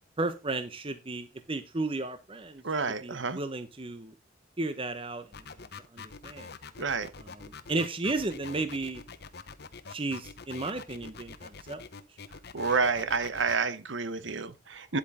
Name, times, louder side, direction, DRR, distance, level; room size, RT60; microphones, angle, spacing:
voice 1, 0.2-2.6 3.0-4.1 4.6-5.4 5.9-6.5 7.2-9.0 9.9-11.8, right 2 dB, 30° right, 0.9 m, -34 dB
voice 2, 2.6-3.4 6.8-7.1 12.5-15.0, right 4 dB, 70° right, 1.0 m, -29 dB
sound 1, 5.3-13.6, left 5 dB, 55° left, 0.9 m, -45 dB
9.8 x 8.5 x 3.7 m
head